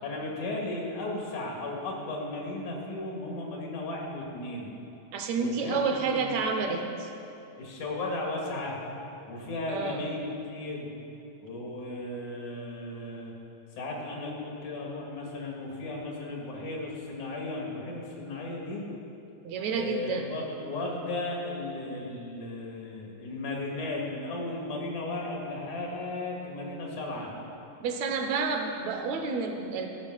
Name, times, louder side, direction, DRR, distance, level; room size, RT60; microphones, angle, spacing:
voice 1, 0.0-4.7 5.4-6.3 7.6-8.8 9.3-10.2 10.5-10.9 11.4-13.3 13.8-18.8 19.7-27.3, left 2 dB, 85° left, -1 dB, 3.2 m, -35 dB
voice 2, 5.1-7.1 9.7-10.1 19.5-20.3 27.8-29.9, right 4 dB, 75° right, 4 dB, 1.9 m, -30 dB
14.0 x 6.0 x 6.2 m, 2.8 s
omnidirectional pair, 3.3 m